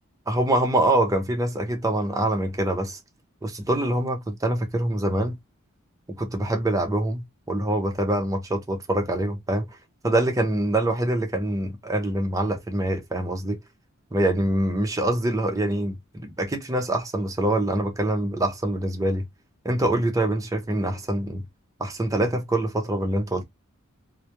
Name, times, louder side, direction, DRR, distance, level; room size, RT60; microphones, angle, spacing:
voice 1, 0.3-3.0 3.4-5.4 6.2-9.7 10.0-13.6 14.1-19.3 19.6-21.4 21.8-23.4, right 1 dB, 15° right, 0.5 m, -25 dB
2.3 x 2.1 x 2.8 m
head